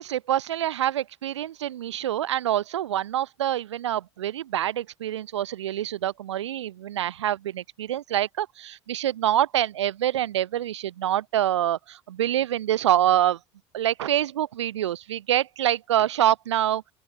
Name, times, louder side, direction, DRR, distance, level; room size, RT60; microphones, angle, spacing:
voice 1, 0.0-13.4 13.7-16.8, right 12 dB, 70° right, 1.5 m, -26 dB
open air
figure-of-eight pair, 65°, 15 cm